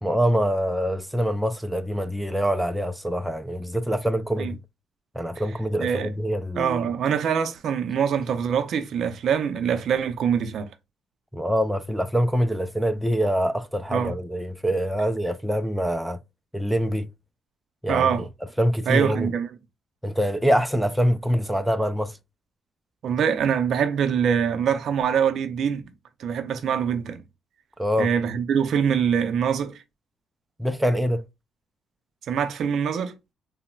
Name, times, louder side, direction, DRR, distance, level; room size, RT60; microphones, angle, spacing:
voice 1, 0.0-4.6 5.1-6.8 11.3-16.2 16.5-17.1 17.8-18.1 18.6-19.3 20.0-22.2 27.8-28.1 30.6-31.2, equal, 5° right, 0.3 m, -24 dB
voice 2, 5.8-6.1 6.6-10.7 13.9-14.1 17.9-18.3 18.9-19.5 23.0-25.8 26.2-27.2 28.0-29.8 32.3-33.2, right 7 dB, 65° right, 0.4 m, -24 dB
3.8 x 2.0 x 2.2 m
cardioid pair, 90°, 0 cm